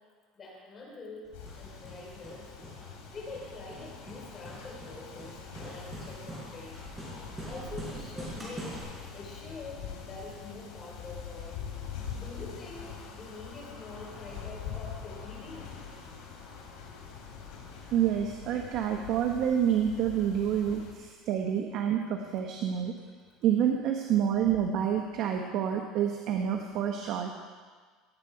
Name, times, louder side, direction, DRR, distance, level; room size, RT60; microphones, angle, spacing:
voice 1, 0.3-2.5 3.1-6.8 7.4-8.8 9.1-11.6 12.2-15.7, left 3 dB, 30° left, -2 dB, 4.4 m, -45 dB
sound 1, 1.3-20.9, left 7 dB, 80° left, 3.4 m, -44 dB
Hammer, 1.3-8.8, right 1 dB, 15° right, 4.6 m, -45 dB
voice 2, 17.9-22.9 23.4-27.4, right 9 dB, 60° right, 3 dB, 1.1 m, -28 dB
18.0 x 8.5 x 4.8 m, 1.5 s
cardioid pair, 125°, 0 cm